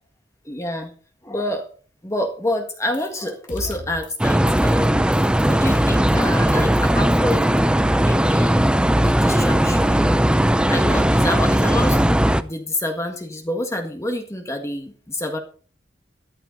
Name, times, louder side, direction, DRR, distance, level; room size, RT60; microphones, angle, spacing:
voice 1, 0.4-0.9 1.2-1.6 2.0-5.1 5.4-7.7 8.0-8.6 9.0-10.2 10.7-12.0 12.4-15.4, left 1 dB, 15° left, 4 dB, 1.7 m, -27 dB
sound 1, 2.9-3.2 3.5-4.3 4.6-4.9 5.1-7.0 7.3-7.6, left 1 dB, 45° left, 2.3 m, -36 dB
sound 2, 4.2-12.4, equal, 5° right, 0.5 m, -18 dB
13.5 x 12.5 x 4.1 m, 0.41 s
head